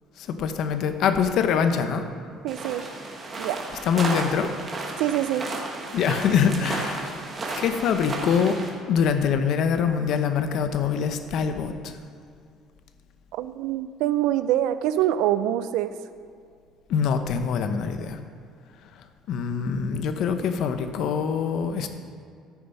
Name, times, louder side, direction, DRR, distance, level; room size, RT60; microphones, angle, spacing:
voice 1, 0.2-2.0 3.9-4.5 5.9-7.2 7.6-8.6 8.9-12.0 16.9-18.2 19.3-21.9, left 7 dB, 55° left, 8 dB, 0.8 m, -24 dB
voice 2, 2.4-2.9 3.4-3.6 5.0-5.5 13.3-15.9, right 12 dB, 80° right, 12 dB, 0.4 m, -25 dB
sound 1, 2.5-8.7, right 2 dB, 20° right, 1.5 m, -33 dB
13.5 x 6.9 x 5.4 m, 2.3 s
cardioid pair, 160°, 0 cm